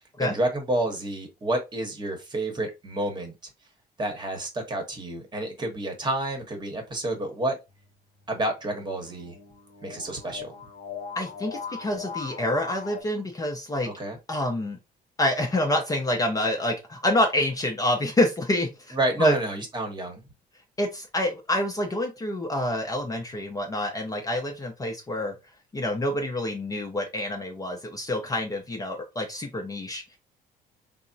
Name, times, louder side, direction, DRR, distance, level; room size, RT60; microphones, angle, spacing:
voice 1, 0.2-3.3 4.0-7.6 8.3-9.4 9.8-10.5 13.8-14.2 18.9-20.2, right 1 dB, 25° right, 1.0 m, -29 dB
sound 1, 7.7-13.0, left 6 dB, 75° left, 0.7 m, -40 dB
voice 2, 11.2-13.9 14.3-14.8 15.2-19.4 20.8-25.3 25.7-30.2, left 1 dB, 20° left, 0.6 m, -27 dB
3.4 x 2.0 x 2.6 m
cardioid pair, 110°, 17 cm